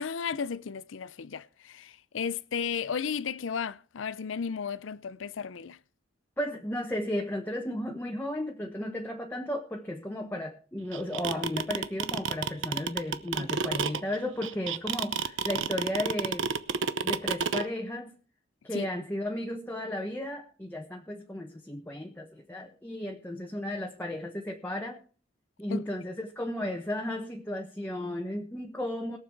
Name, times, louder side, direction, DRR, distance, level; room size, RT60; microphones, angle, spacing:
voice 1, 0.0-5.8 18.7-18.9 25.7-25.8, left 6 dB, 80° left, 0.5 m, -34 dB
voice 2, 6.4-16.5 17.0-18.1 18.6-25.0 25.6-29.2, left 1 dB, 10° left, 1.2 m, -34 dB
sound 1, 10.9-17.6, right 5 dB, 75° right, 0.9 m, -29 dB
21.5 x 7.2 x 4.6 m
head